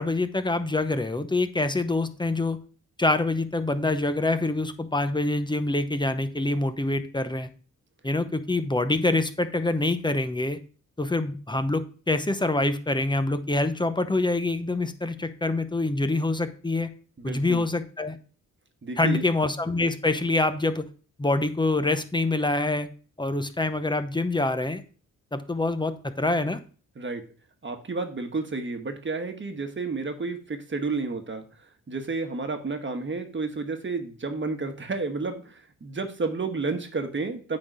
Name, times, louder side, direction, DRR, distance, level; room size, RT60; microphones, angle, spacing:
voice 1, 0.0-2.6 3.0-7.5 8.0-10.6 11.0-16.9 17.2-18.2 19.0-20.8 21.2-22.9 23.2-24.8 25.3-26.6, left 2 dB, 15° left, 10 dB, 0.8 m, -25 dB
voice 2, 17.2-17.6 18.8-19.2 27.0-27.2 27.6-31.4 31.9-37.6, right 3 dB, 35° right, 6 dB, 1.3 m, -31 dB
8.7 x 4.0 x 5.0 m, 0.39 s
cardioid pair, 85°, 33 cm